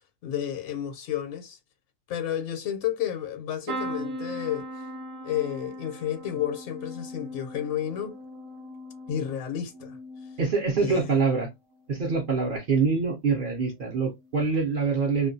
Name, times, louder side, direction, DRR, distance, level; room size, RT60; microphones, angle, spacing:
voice 1, 0.2-1.6 2.1-4.9 5.2-8.1 9.1-10.0 10.8-11.1, left 10 dB, 70° left, 0.9 m, -31 dB
sound 1, 3.7-11.5 11.9-12.5 13.7-13.9 14.2-14.3, equal, 80° right, 0.9 m, -39 dB
voice 2, 10.4-11.5 11.9-15.3, right 4 dB, 55° right, 0.6 m, -25 dB
2.4 x 2.2 x 2.6 m
omnidirectional pair, 1.3 m